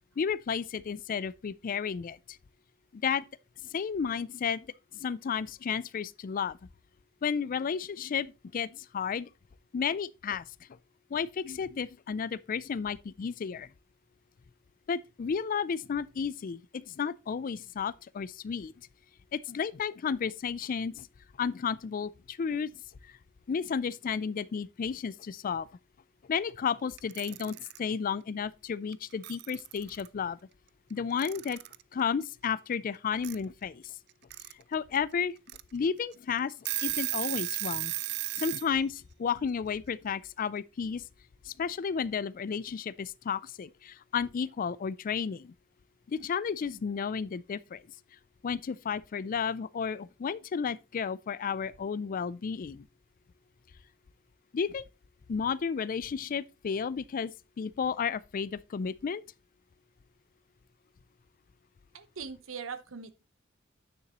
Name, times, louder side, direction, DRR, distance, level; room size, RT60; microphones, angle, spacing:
voice 1, 0.2-2.4 2.9-3.3 3.6-4.7 4.9-6.6 7.2-9.3 9.7-10.5 11.1-13.7 14.9-18.9 19.3-21.1 21.4-22.7 23.0-23.1 23.5-25.7 26.3-30.4 30.9-31.6 31.9-33.9 34.5-35.3 35.7-37.9 38.4-41.1 41.4-45.5 46.1-47.8 48.4-52.9 54.5-54.8 55.3-59.2, left 6 dB, 45° left, 0.4 m, -32 dB
Alarm / Clock, 27.0-27.8 28.9-29.0 29.2-30.1 31.2-31.8 33.2-33.4 34.1-34.5 35.0-35.1 35.5-35.6 36.1-36.2 36.5-38.7, right 17 dB, 55° right, 0.4 m, -34 dB
voice 2, 61.9-63.2, right 5 dB, 80° right, 0.9 m, -41 dB
9.4 x 6.8 x 3.0 m
head